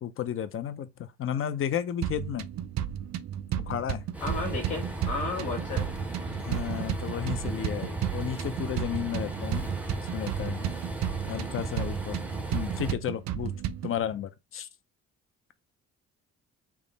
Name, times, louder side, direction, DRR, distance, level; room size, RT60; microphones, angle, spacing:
voice 1, 0.0-2.5 3.6-4.1 6.5-9.7 10.0-10.7 11.3-12.2 12.5-13.5 13.8-14.7, left 10 dB, 45° left, 0.5 m, -33 dB
sound 1, 2.0-14.0, right 10 dB, 65° right, 0.5 m, -33 dB
Train, 4.1-12.9, right 2 dB, 5° right, 0.6 m, -36 dB
voice 2, 4.2-5.9 11.2-11.4, left 4 dB, 80° left, 1.2 m, -34 dB
3.5 x 2.1 x 3.8 m
cardioid pair, 90°, 30 cm